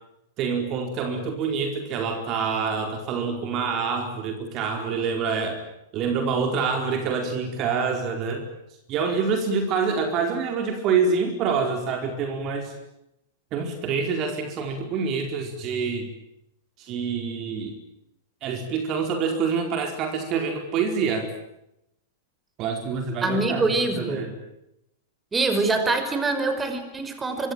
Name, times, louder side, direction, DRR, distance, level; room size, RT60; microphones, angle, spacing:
voice 1, 0.4-5.6 5.9-8.4 8.9-12.7 13.5-16.1 16.8-17.8 18.4-21.3 22.6-24.3, right 5 dB, 40° right, 5 dB, 4.6 m, -26 dB
voice 2, 23.2-24.2 25.3-27.5, right 3 dB, 15° right, 8 dB, 5.6 m, -24 dB
25.5 x 24.5 x 9.2 m, 0.85 s
figure-of-eight pair, 100°, 0 cm